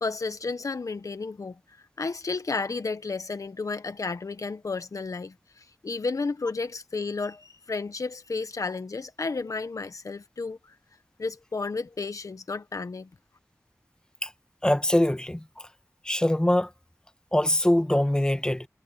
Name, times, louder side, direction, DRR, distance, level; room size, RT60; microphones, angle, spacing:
voice 1, 0.0-1.6 2.0-10.7 11.2-13.1, left 4 dB, 85° left, 1.1 m, -32 dB
voice 2, 14.6-15.4 16.0-16.7 17.3-18.7, left 1 dB, 15° left, 1.5 m, -23 dB
wide cardioid pair, 60°, 6 cm